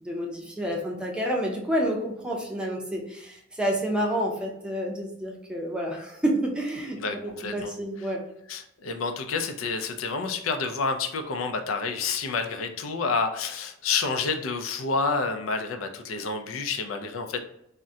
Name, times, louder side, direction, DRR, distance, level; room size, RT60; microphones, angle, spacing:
voice 1, 0.0-8.2, equal, 5° right, -1 dB, 0.5 m, -29 dB
voice 2, 7.0-7.7 8.5-17.4, left 4 dB, 85° left, 6 dB, 0.4 m, -29 dB
3.6 x 2.1 x 2.6 m, 0.77 s
head